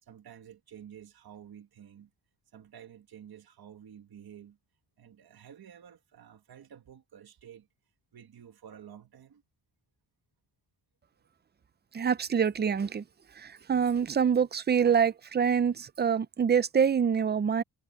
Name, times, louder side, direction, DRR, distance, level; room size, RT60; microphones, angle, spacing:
voice 1, 0.0-2.1 2.5-4.6 5.0-7.7 8.1-9.4, right 9 dB, 50° right, 1.6 m, -51 dB
voice 2, 11.9-13.0 13.4-17.6, right 7 dB, 25° right, 0.3 m, -26 dB
wide cardioid pair, 165°, 48 cm